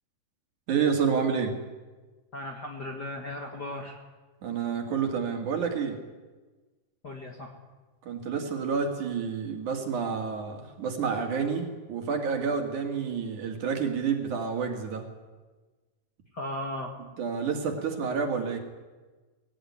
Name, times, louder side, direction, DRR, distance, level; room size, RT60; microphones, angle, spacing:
voice 1, 0.7-1.6 4.4-6.0 8.0-15.1 17.2-18.6, right 6 dB, 60° right, 4 dB, 3.6 m, -29 dB
voice 2, 2.3-4.0 7.0-7.6 16.3-16.9, left 1 dB, 35° left, 2 dB, 2.0 m, -36 dB
20.5 x 17.0 x 9.7 m, 1.3 s
omnidirectional pair, 4.0 m